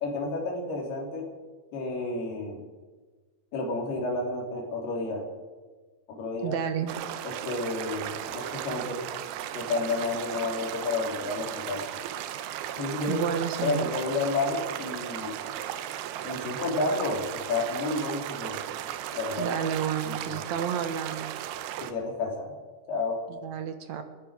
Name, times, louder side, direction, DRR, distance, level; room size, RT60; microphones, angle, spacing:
voice 1, 0.0-1.3 1.7-2.6 3.5-5.3 6.1-6.6 7.2-9.0 9.5-11.8 12.8-13.2 13.6-15.4 16.2-18.6 19.1-19.5 20.1-20.4 21.8-22.5 22.9-23.2, left 3 dB, 85° left, 0 dB, 5.0 m, -31 dB
voice 2, 6.4-6.9 13.1-13.9 19.4-21.3 23.3-24.0, right 8 dB, 65° right, 8 dB, 1.9 m, -31 dB
sound 1, 6.9-21.9, right 11 dB, 85° right, 2.8 m, -36 dB
28.0 x 10.0 x 4.9 m, 1.3 s
omnidirectional pair, 4.4 m